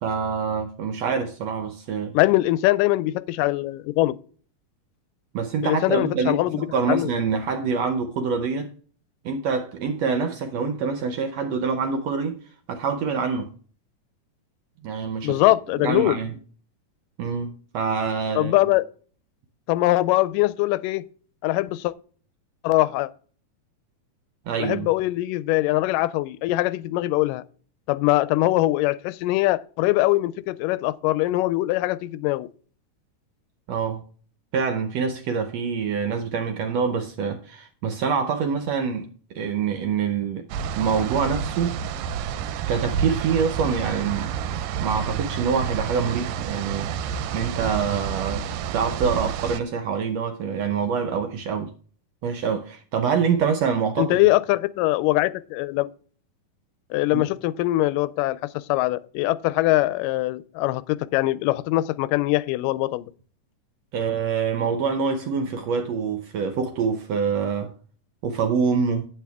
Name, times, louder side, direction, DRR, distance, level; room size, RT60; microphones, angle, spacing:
voice 1, 0.0-2.1 5.3-8.7 9.2-12.4 12.7-13.5 14.8-15.4 15.8-16.3 17.2-18.5 24.5-24.9 33.7-34.0 34.5-40.5 40.7-41.8 42.7-44.3 44.8-46.9 47.3-48.4 48.7-51.7 52.2-54.2 57.1-57.2 63.9-67.7 68.2-69.1, right 6 dB, 70° right, 1.6 m, -25 dB
voice 2, 2.1-4.2 5.6-6.6 6.9-7.1 15.2-16.2 18.4-18.9 19.7-21.1 21.4-21.9 22.6-23.1 24.6-27.4 27.9-32.5 54.0-55.9 56.9-63.1, left 17 dB, 85° left, 2.1 m, -22 dB
sound 1, 40.5-49.6, right 7 dB, 90° right, 2.4 m, -29 dB
9.2 x 8.3 x 3.4 m
omnidirectional pair, 3.8 m